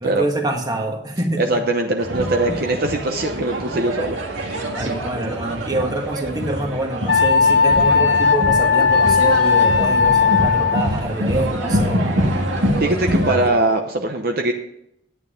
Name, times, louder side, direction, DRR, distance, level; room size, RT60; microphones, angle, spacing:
voice 1, 0.0-1.6 4.7-12.3, right 1 dB, 20° right, 3 dB, 1.6 m, -26 dB
voice 2, 1.4-4.9 12.8-14.5, right 2 dB, 50° right, 3 dB, 0.9 m, -22 dB
sound 1, 2.0-13.5, equal, 80° right, 1.9 m, -25 dB
Wind instrument woodwind instrument, 7.1-10.9, left 5 dB, 75° left, 1.5 m, -16 dB
11.0 x 9.1 x 5.2 m, 0.78 s
head